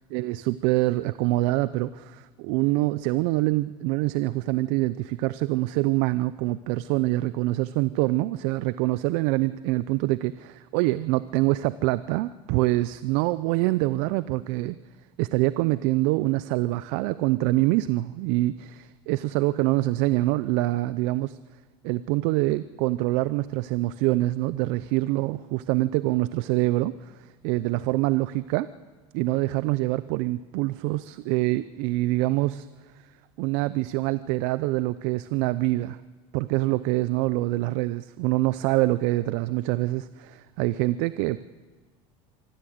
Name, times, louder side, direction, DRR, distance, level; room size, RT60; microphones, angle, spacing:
voice 1, 0.1-14.8 15.2-21.4 21.8-28.7 29.1-32.7 33.4-36.0 36.3-41.4, right 18 dB, 70° right, 16 dB, 0.5 m, -25 dB
24.5 x 14.0 x 7.8 m, 1.4 s
supercardioid pair, 105°, 15 cm